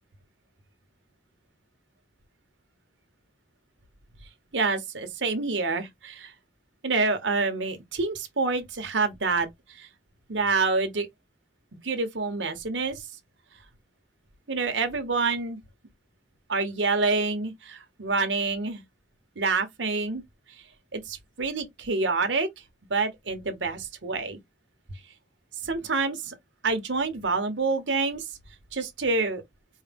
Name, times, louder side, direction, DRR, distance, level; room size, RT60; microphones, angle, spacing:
voice 1, 4.5-6.3 6.8-9.5 9.8-9.9 10.3-11.1 11.8-13.0 14.5-15.6 16.5-18.8 19.4-20.2 20.9-22.5 22.9-24.4 25.6-26.3 26.6-28.2 28.7-29.4, right 3 dB, 85° right, 1.0 m, -27 dB
4.7 x 2.1 x 3.5 m
head